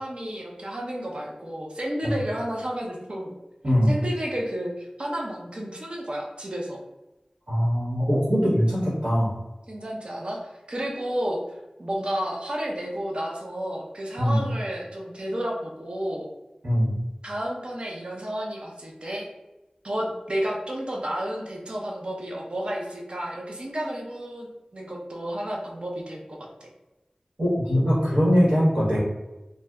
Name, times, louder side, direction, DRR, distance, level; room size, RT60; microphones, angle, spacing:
voice 1, 0.0-3.3 3.9-6.8 9.7-11.4 11.8-16.3 17.2-19.3 19.8-26.5, equal, 50° right, -1 dB, 0.7 m, -31 dB
voice 2, 7.5-9.3 14.2-14.4 16.6-16.9 27.4-29.0, equal, 75° right, -9 dB, 1.2 m, -21 dB
2.6 x 2.1 x 3.4 m, 1.0 s
wide cardioid pair, 45°, 2 cm